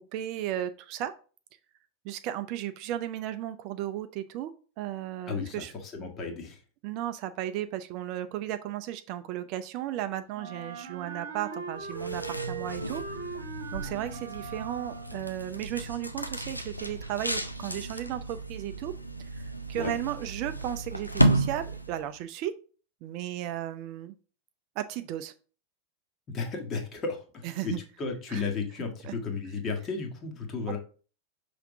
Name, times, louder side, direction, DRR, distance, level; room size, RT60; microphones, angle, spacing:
voice 1, 0.1-1.1 2.0-4.5 4.8-5.7 6.8-13.4 13.7-18.9 19.3-22.6 23.0-24.1 24.8-25.3 27.4-27.8 28.3-28.4 29.0-29.1 30.7-30.8, right 12 dB, 40° right, 10 dB, 0.4 m, -35 dB
voice 2, 5.3-6.6 19.7-19.9 26.3-30.8, left 4 dB, 30° left, 2 dB, 1.5 m, -34 dB
Wind instrument woodwind instrument, 10.3-15.4, right 6 dB, 60° right, 1.0 m, -40 dB
sound 1, 11.8-22.1, right 1 dB, 90° left, 0.5 m, -32 dB
5.8 x 3.4 x 5.1 m, 0.38 s
figure-of-eight pair, 90°, 0 cm